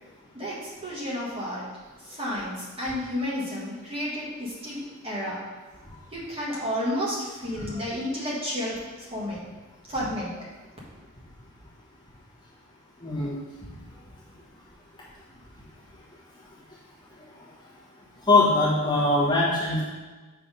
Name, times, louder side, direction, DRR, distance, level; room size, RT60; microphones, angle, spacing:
voice 1, 0.3-1.7 2.0-5.4 6.1-9.4 9.9-10.4, equal, 25° right, -7 dB, 1.4 m, -31 dB
voice 2, 13.0-13.4 18.3-19.8, left 2 dB, 20° left, -8 dB, 1.1 m, -22 dB
5.7 x 3.4 x 5.3 m, 1.3 s
head